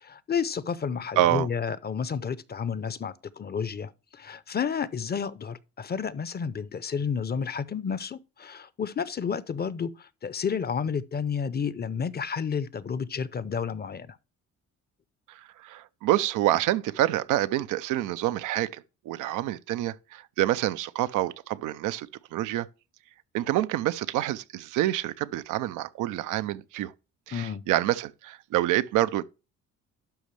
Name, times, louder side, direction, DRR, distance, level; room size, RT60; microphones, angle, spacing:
voice 1, 0.0-14.2 27.3-27.6, left 6 dB, 30° left, 0.6 m, -31 dB
voice 2, 1.2-1.5 15.3-22.7 23.3-26.9 27.3-29.2, right 14 dB, 90° right, 0.5 m, -27 dB
12.0 x 5.1 x 3.2 m
cardioid pair, 90°, 30 cm